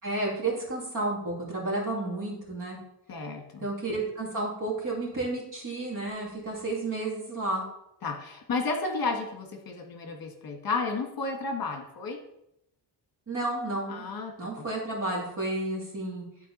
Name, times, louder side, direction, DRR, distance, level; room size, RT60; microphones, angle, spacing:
voice 1, 0.0-2.8 3.6-7.6 13.3-14.0 14.4-16.2, right 2 dB, 50° right, -3 dB, 2.7 m, -31 dB
voice 2, 3.1-3.7 8.0-12.2 13.9-14.3 14.6-14.7, left 3 dB, 55° left, 3 dB, 1.4 m, -32 dB
10.5 x 4.4 x 4.2 m, 0.81 s
wide cardioid pair, 150°, 41 cm